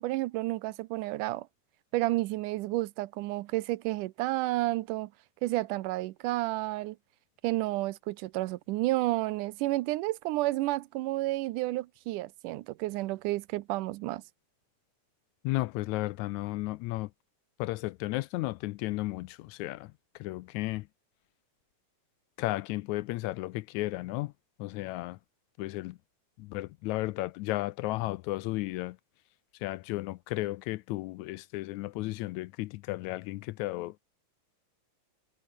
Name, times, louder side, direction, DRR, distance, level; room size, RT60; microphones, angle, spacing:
voice 1, 0.0-1.5 1.9-5.1 5.4-7.0 7.4-14.2, right 18 dB, 85° right, 2.3 m, -31 dB
voice 2, 15.4-17.1 17.6-20.9 22.4-24.3 24.6-25.2 25.6-26.0 26.4-29.0 29.6-34.0, left 19 dB, 80° left, 1.8 m, -34 dB
omnidirectional pair, 3.6 m